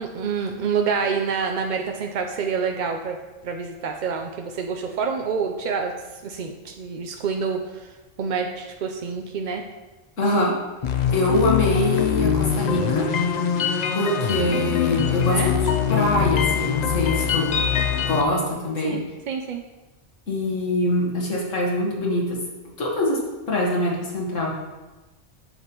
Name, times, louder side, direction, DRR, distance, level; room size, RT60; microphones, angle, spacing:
voice 1, 0.0-3.2 3.4-5.9 6.2-7.9 8.2-9.6 15.3-15.5 18.8-19.6, right 5 dB, 60° right, 3 dB, 0.5 m, -27 dB
voice 2, 10.2-10.6 11.1-13.1 13.9-15.5 15.9-17.6 18.1-19.0 20.3-22.4 22.8-23.2 23.5-24.5, left 1 dB, 85° left, -2 dB, 1.8 m, -23 dB
sound 1, 10.8-18.2, left 8 dB, 60° left, 0.4 m, -23 dB
8.0 x 6.9 x 2.9 m, 1.2 s
omnidirectional pair, 1.3 m